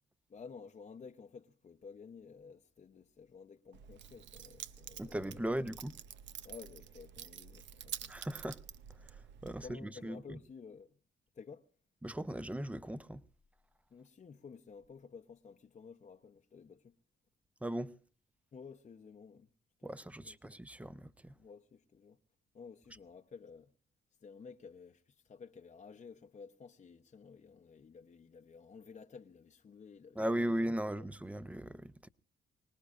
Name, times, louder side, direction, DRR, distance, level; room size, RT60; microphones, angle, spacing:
voice 1, 0.3-5.7 6.4-8.1 9.4-11.0 11.3-11.7 13.9-17.0 18.5-19.5 19.8-20.4 21.4-22.2 22.5-23.7 24.2-30.2 30.5-30.6, left 5 dB, 35° left, 0.8 m, -53 dB
Keys jangling, 3.7-9.7, right 10 dB, 65° right, 0.6 m, -49 dB
voice 2, 5.0-6.0 8.1-8.6 9.0-10.4 12.0-13.2 17.6-17.9 19.8-21.3 30.2-32.1, right 1 dB, 5° right, 0.6 m, -38 dB
25.0 x 19.0 x 2.5 m
cardioid pair, 90°, 20 cm